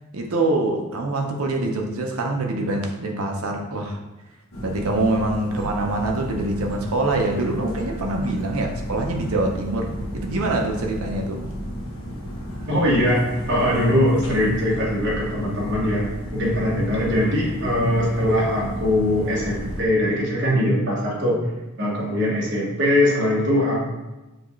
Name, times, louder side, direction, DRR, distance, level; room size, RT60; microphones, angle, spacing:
voice 1, 0.1-4.0 4.6-11.4, right 2 dB, 70° right, 2 dB, 0.7 m, -25 dB
sound 1, 4.5-19.8, equal, 65° left, 0.9 m, -33 dB
voice 2, 12.7-16.0 16.3-21.4 21.8-23.8, left 1 dB, 50° right, -5 dB, 1.3 m, -21 dB
6.2 x 2.4 x 3.1 m, 1.1 s
head